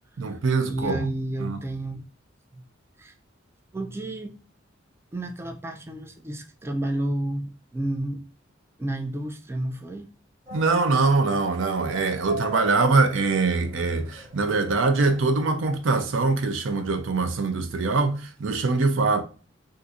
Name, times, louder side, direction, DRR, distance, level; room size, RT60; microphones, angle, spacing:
voice 1, 0.2-1.1 1.4-1.6 10.5-19.2, right 3 dB, 70° right, 0.5 m, -23 dB
voice 2, 0.7-2.0 3.0-3.1 3.7-4.4 5.1-8.3 8.8-10.1, right 1 dB, 15° right, 0.3 m, -31 dB
sound 1, 10.5-16.3, left 1 dB, 30° right, 1.0 m, -41 dB
2.5 x 2.5 x 3.9 m
head